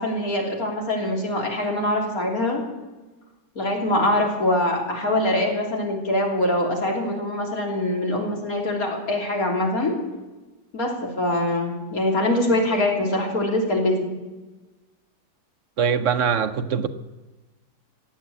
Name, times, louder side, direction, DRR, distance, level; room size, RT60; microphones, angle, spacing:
voice 1, 0.0-2.6 3.6-10.0 10.7-14.1, left 1 dB, 65° left, 3.6 m, -23 dB
voice 2, 15.8-16.9, right 7 dB, 60° right, 1.0 m, -22 dB
16.5 x 10.5 x 8.3 m
omnidirectional pair, 1.6 m